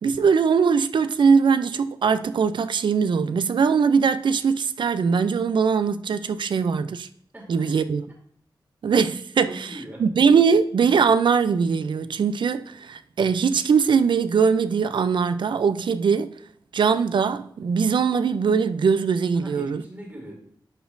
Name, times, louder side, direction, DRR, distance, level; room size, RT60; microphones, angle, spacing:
voice 1, 0.0-7.1 7.5-8.0 8.8-9.7 10.0-16.3 16.7-19.8, right 6 dB, 75° right, 0.4 m, -21 dB
voice 2, 7.3-7.7 9.5-10.0 19.3-20.3, right 1 dB, 25° right, 2.1 m, -41 dB
11.5 x 5.0 x 2.6 m
wide cardioid pair, 125°, 8 cm